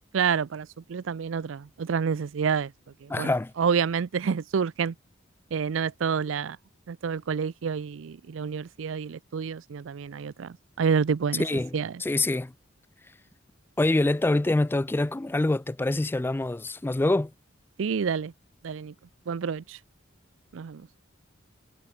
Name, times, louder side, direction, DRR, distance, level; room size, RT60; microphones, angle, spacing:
voice 1, 0.1-2.7 3.0-5.0 5.5-6.6 6.9-12.0 17.8-18.3 18.6-18.9 19.3-19.8 20.5-20.9, right 6 dB, 80° right, 0.4 m, -28 dB
voice 2, 3.1-3.5 11.4-12.5 13.8-17.3, left 2 dB, 10° left, 0.3 m, -25 dB
head